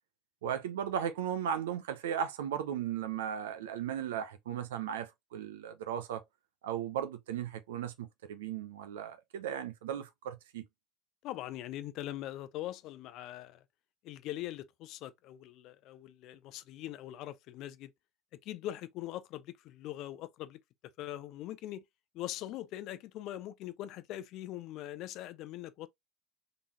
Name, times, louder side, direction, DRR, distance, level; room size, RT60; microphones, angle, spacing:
voice 1, 0.4-6.2 6.6-10.7, right 9 dB, 75° right, 0.7 m, -36 dB
voice 2, 11.2-13.6 14.0-17.9 18.3-20.6 21.0-21.9 22.1-25.9, left 14 dB, 55° left, 0.5 m, -42 dB
3.8 x 3.6 x 2.9 m
hypercardioid pair, 75°, 0 cm